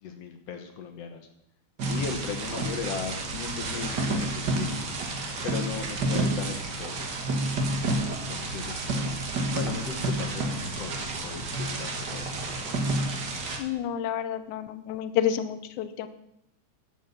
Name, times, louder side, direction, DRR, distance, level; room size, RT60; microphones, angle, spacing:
voice 1, 0.0-1.2 1.9-4.8 5.4-7.1 8.3-9.2 9.5-12.5, left 6 dB, 65° left, 6 dB, 1.9 m, -37 dB
sound 1, 1.8-13.6, right 2 dB, 45° right, 1.5 m, -30 dB
voice 2, 13.6-16.1, left 10 dB, 80° left, 12 dB, 2.2 m, -29 dB
11.5 x 7.5 x 6.6 m, 0.80 s
omnidirectional pair, 3.5 m